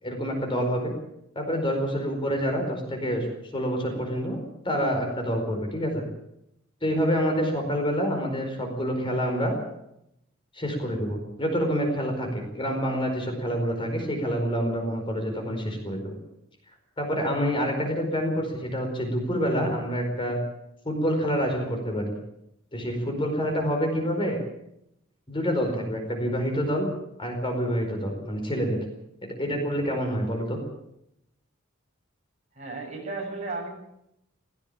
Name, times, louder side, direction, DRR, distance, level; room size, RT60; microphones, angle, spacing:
voice 1, 0.0-0.9 1.3-3.3 3.5-4.4 4.6-6.1 6.8-9.5 10.5-16.2 17.0-20.4 20.8-22.1 22.7-24.4 25.3-26.9 27.2-28.8 29.2-30.6, equal, 25° left, 3 dB, 4.7 m, -27 dB
voice 2, 32.6-33.7, right 3 dB, 35° right, 0 dB, 7.2 m, -34 dB
17.5 x 17.5 x 8.7 m, 0.81 s
head